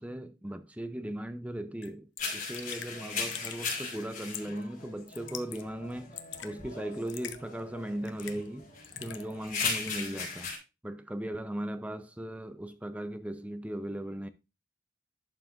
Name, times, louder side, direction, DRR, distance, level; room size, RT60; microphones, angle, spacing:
voice 1, 0.0-8.7 9.0-10.5 10.8-14.3, right 1 dB, 5° right, 0.5 m, -38 dB
Raindrop / Drip, 1.8-1.9 2.2-2.3 2.5-2.9 3.3-3.8 4.3-4.6 5.1-5.6 5.9-6.5 7.1-7.4 8.0-8.5 8.8-9.4 9.6-10.1, left 10 dB, 65° left, 0.8 m, -42 dB
sound 1, 2.2-10.6, left 4 dB, 40° left, 4.2 m, -38 dB
11.5 x 5.9 x 2.5 m
head